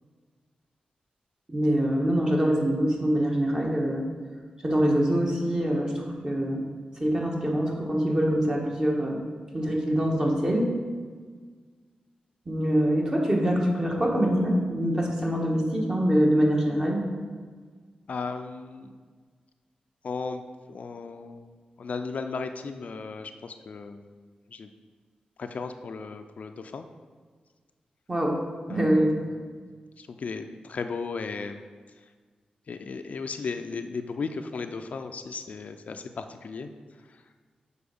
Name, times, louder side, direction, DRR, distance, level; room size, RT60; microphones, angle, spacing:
voice 1, 1.5-4.0 4.6-6.6 7.0-9.2 9.5-10.7 12.4-17.0 28.1-28.4 28.7-29.1, equal, 25° right, -1 dB, 1.4 m, -24 dB
voice 2, 18.1-18.9 20.0-20.4 20.7-21.5 21.8-24.2 24.5-24.7 25.4-26.9 28.7-28.9 29.2-29.5 30.0-31.6 32.7-36.7 37.1-37.2, left 4 dB, 60° left, 7 dB, 0.4 m, -35 dB
6.9 x 4.2 x 5.3 m, 1.6 s
cardioid pair, 80°, 3 cm